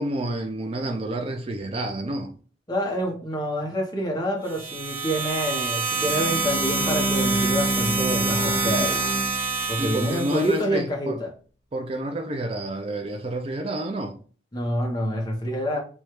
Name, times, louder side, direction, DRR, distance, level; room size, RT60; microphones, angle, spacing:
voice 1, 0.0-2.3 9.8-11.2 11.7-14.2, right 1 dB, 30° right, 0.4 m, -29 dB
voice 2, 2.7-9.0 9.7-11.3 14.5-15.8, equal, 20° left, 0.9 m, -27 dB
sound 1, 4.4-10.6, right 3 dB, 10° right, 0.8 m, -27 dB
Bowed string instrument, 5.9-10.0, right 1 dB, 45° left, 0.7 m, -28 dB
3.2 x 2.4 x 4.3 m
head